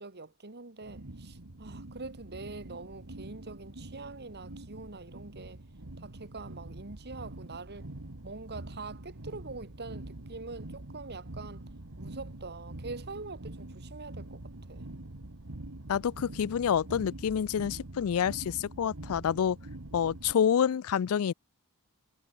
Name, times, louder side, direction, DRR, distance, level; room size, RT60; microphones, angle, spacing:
voice 1, 0.0-5.6 6.0-7.9 8.2-11.7 12.0-14.4 14.7-14.9, right 3 dB, 50° right, 1.9 m, -44 dB
sound 1, 0.8-20.3, right 1 dB, 70° right, 1.8 m, -45 dB
voice 2, 15.9-19.6 19.9-21.3, left 8 dB, 70° left, 0.4 m, -28 dB
head